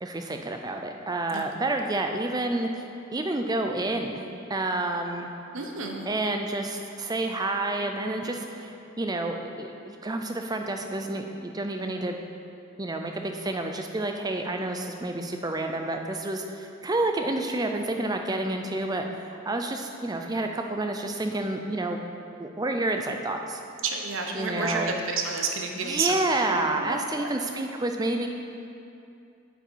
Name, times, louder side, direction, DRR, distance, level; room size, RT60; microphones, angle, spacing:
voice 1, 0.0-2.9 3.1-5.3 6.1-12.2 12.8-22.0 22.4-23.6 24.3-24.9 25.8-28.3, right 2 dB, 15° right, 4 dB, 0.5 m, -29 dB
voice 2, 5.5-6.1 23.8-27.3, right 4 dB, 60° right, 2 dB, 0.8 m, -30 dB
8.2 x 8.1 x 4.6 m, 2.7 s
head